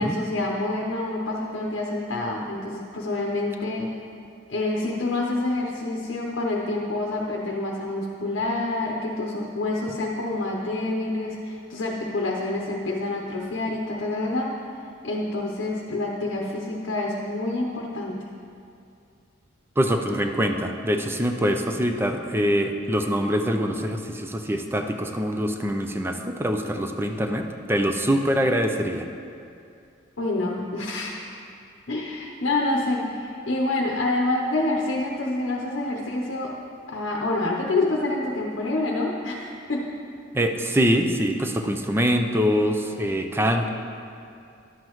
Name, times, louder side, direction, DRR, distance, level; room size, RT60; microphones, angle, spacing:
voice 1, 0.0-3.9 4.5-14.5 15.0-18.2 30.2-31.4 31.9-36.5 36.9-39.8, left 2 dB, 70° left, -2 dB, 0.8 m, -27 dB
voice 2, 19.8-29.1 40.3-43.7, equal, 10° right, 5 dB, 0.4 m, -24 dB
11.0 x 7.5 x 3.0 m, 2.5 s
head